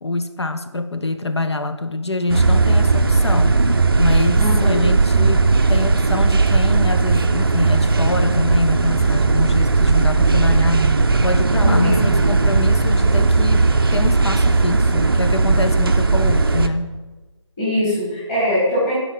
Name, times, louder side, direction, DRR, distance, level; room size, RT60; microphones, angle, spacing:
voice 1, 0.0-3.6 4.0-10.9 11.2-17.0, left 2 dB, 60° left, 9 dB, 0.5 m, -25 dB
sound 1, 2.3-16.7, right 3 dB, 45° right, 0.5 m, -16 dB
voice 2, 4.3-4.8 11.6-12.3 17.6-19.0, equal, 10° left, -9 dB, 1.7 m, -22 dB
9.2 x 4.5 x 3.9 m, 1.2 s
figure-of-eight pair, 165°, 16 cm